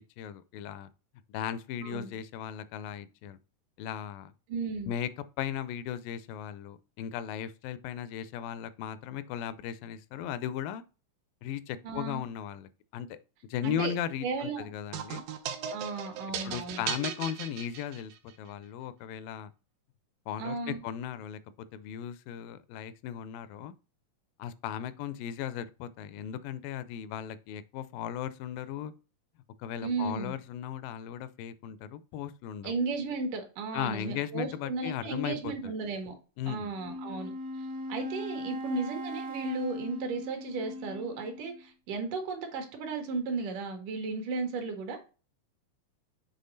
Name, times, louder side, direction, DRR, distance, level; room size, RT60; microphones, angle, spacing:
voice 1, 0.2-0.9 1.3-3.4 3.8-4.3 4.9-5.1 5.4-10.8 11.4-13.2 13.5-15.2 16.4-18.1 18.4-19.5 20.3-23.7 24.4-28.9 29.6-32.7 33.7-35.7 36.4-36.7, left 9 dB, 90° left, 2.3 m, -37 dB
voice 2, 4.5-4.9 11.8-12.2 13.6-13.9 14.2-14.7 15.7-16.8 20.4-20.8 29.8-30.4 32.6-36.1 36.5-37.3 37.9-45.0, right 4 dB, 70° right, 2.8 m, -35 dB
sound 1, 14.9-18.3, right 8 dB, 90° right, 2.6 m, -37 dB
Wind instrument woodwind instrument, 36.7-41.6, equal, 50° right, 1.1 m, -39 dB
7.5 x 3.5 x 3.9 m
omnidirectional pair, 3.9 m